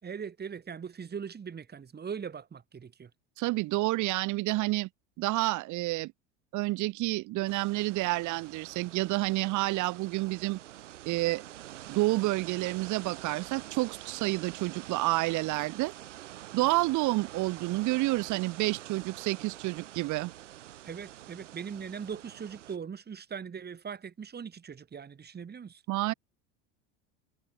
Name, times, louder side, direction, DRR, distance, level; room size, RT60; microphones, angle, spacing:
voice 1, 0.0-3.1 20.8-25.8, right 6 dB, 25° right, 4.2 m, -40 dB
voice 2, 3.4-4.9 5.2-6.1 6.5-10.6 11.1-11.4 11.9-15.9 16.5-20.3 25.9-26.1, right 20 dB, 55° right, 2.1 m, -29 dB
sound 1, 7.5-22.8, right 13 dB, 85° right, 3.0 m, -47 dB
hypercardioid pair, 85°, 36 cm